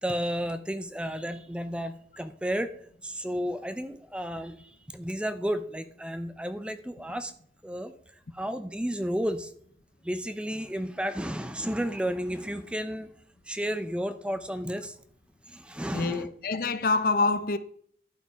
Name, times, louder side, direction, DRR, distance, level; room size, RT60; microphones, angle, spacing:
voice 1, 0.0-2.7 3.0-7.3 7.6-7.9 8.3-9.5 10.0-13.1 13.5-15.0 15.5-16.3, equal, 5° right, 0.5 m, -32 dB
voice 2, 15.9-17.6, left 3 dB, 55° left, 0.6 m, -26 dB
11.5 x 5.2 x 4.6 m
head